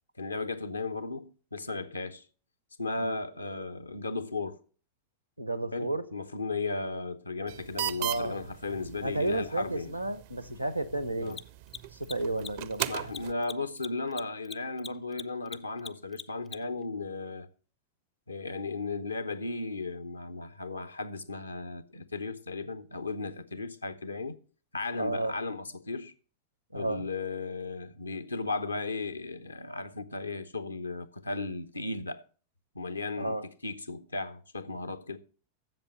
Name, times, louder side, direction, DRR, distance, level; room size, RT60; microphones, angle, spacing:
voice 1, 0.2-2.2 2.8-4.6 5.7-10.0 11.2-11.4 12.9-17.5 18.3-24.4 24.7-26.1 26.7-32.2 32.7-35.2, left 3 dB, 80° left, 0.7 m, -35 dB
voice 2, 5.4-6.0 8.0-8.3 9.0-11.4 11.9-12.9 25.0-25.3 26.7-27.1 33.2-33.4, right 2 dB, 90° right, 0.8 m, -32 dB
sound 1, 7.5-13.3, right 14 dB, 50° right, 0.4 m, -39 dB
Mechanisms, 8.1-8.2 11.2-16.8, left 6 dB, 15° left, 0.4 m, -43 dB
7.7 x 7.0 x 7.0 m
figure-of-eight pair, 90°, 0 cm